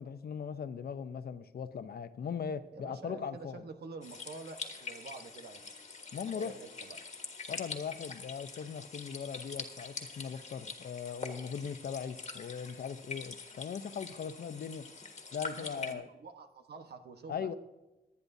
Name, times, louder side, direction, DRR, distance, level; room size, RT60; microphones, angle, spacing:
voice 1, 0.0-3.6 6.1-6.6 7.5-14.9 15.3-16.1 17.3-17.5, left 7 dB, 70° left, 0.7 m, -39 dB
voice 2, 2.7-5.6 6.3-7.1 15.5-17.5, right 4 dB, 80° right, 1.2 m, -47 dB
sound 1, 4.0-15.9, left 4 dB, 45° left, 1.5 m, -45 dB
23.0 x 9.6 x 2.7 m
wide cardioid pair, 135°, 17 cm